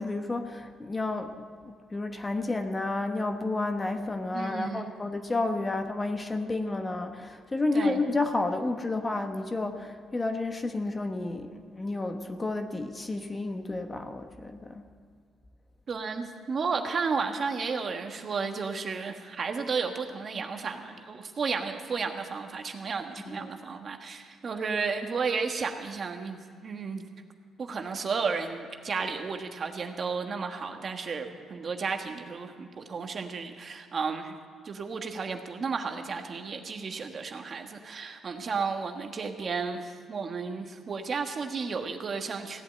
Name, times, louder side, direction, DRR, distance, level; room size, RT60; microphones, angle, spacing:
voice 1, 0.0-14.8 23.2-23.5, left 2 dB, 25° left, 6 dB, 1.1 m, -31 dB
voice 2, 4.3-4.9 7.7-8.0 15.9-27.1 27.6-34.4 34.6-42.6, right 5 dB, 45° right, 5 dB, 1.4 m, -33 dB
16.5 x 8.6 x 7.9 m, 2.1 s
cardioid pair, 90°, 0 cm